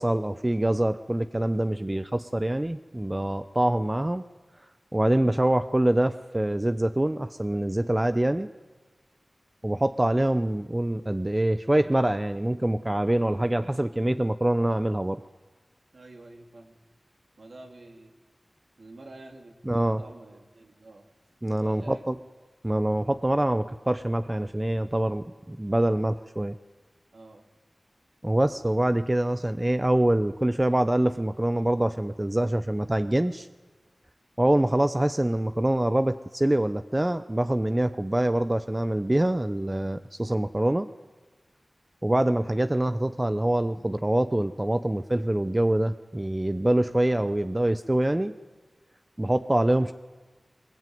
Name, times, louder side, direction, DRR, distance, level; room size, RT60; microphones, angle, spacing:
voice 1, 0.0-4.2 4.9-8.5 9.6-15.2 19.7-20.0 21.4-22.2 22.6-26.5 28.2-33.5 34.4-40.9 42.0-48.3 49.2-49.9, right 1 dB, 25° right, 11 dB, 0.8 m, -25 dB
voice 2, 15.9-16.8 17.4-18.1 18.8-21.1 21.6-22.1 22.7-22.8 27.1-27.5, right 2 dB, 85° right, 2 dB, 3.6 m, -48 dB
22.5 x 21.5 x 9.3 m, 1.3 s
wide cardioid pair, 60°, 0 cm